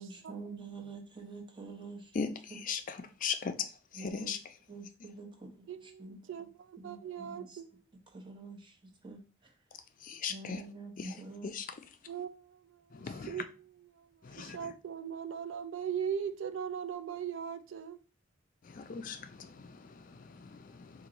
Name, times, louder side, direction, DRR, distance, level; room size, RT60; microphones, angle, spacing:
voice 1, 0.0-2.6 3.9-4.3 4.7-6.5 6.8-7.6 8.1-9.5 10.3-11.5, right 3 dB, 25° right, 0.9 m, -47 dB
voice 2, 3.2-3.7 4.0-4.4 10.0-10.6 11.0-11.1 11.5-11.6 12.9-13.3 14.2-14.6 18.7-21.1, left 6 dB, 40° left, 0.4 m, -38 dB
voice 3, 5.7-7.6 12.1-18.0, right 8 dB, 65° right, 0.4 m, -40 dB
4.5 x 2.6 x 3.9 m
head